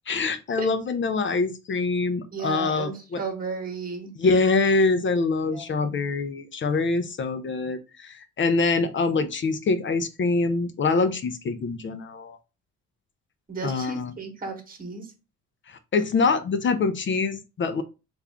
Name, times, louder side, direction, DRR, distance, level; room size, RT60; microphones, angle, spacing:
voice 1, 0.1-3.2 4.2-12.4 13.6-14.1 15.7-17.8, left 3 dB, 40° left, 9 dB, 0.5 m, -24 dB
voice 2, 2.3-4.1 5.4-6.0 13.5-15.1, right 4 dB, 30° right, 4 dB, 1.1 m, -34 dB
3.4 x 2.5 x 3.4 m, 0.29 s
cardioid pair, 90°, 30 cm